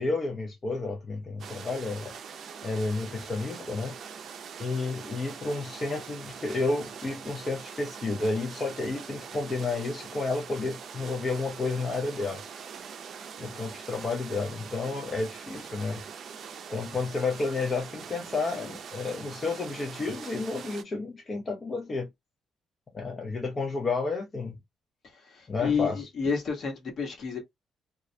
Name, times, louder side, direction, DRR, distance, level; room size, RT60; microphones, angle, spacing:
voice 1, 0.0-2.1 2.6-4.0 4.6-12.4 13.4-16.0 16.7-22.1 22.9-24.6 25.5-26.1, left 3 dB, 35° left, 0.6 m, -31 dB
sound 1, 1.4-20.8, right 6 dB, 60° right, 0.4 m, -43 dB
voice 2, 25.3-27.4, left 6 dB, 60° left, 1.1 m, -30 dB
2.3 x 2.0 x 2.6 m
cardioid pair, 90°, 0 cm